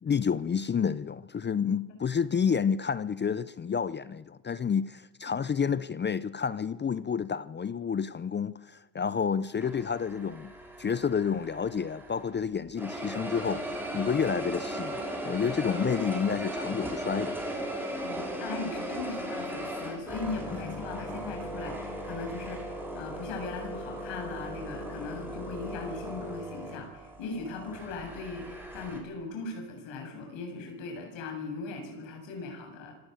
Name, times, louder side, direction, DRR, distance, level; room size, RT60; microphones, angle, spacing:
voice 1, 0.0-10.5 10.8-17.4, left 6 dB, 25° left, 0.6 m, -29 dB
sound 1, 9.6-12.4 12.8-29.0, right 1 dB, 5° right, 6.5 m, -37 dB
voice 2, 18.0-32.9, left 4 dB, 75° left, 7.5 m, -39 dB
26.0 x 15.0 x 8.1 m
cardioid pair, 100°, 46 cm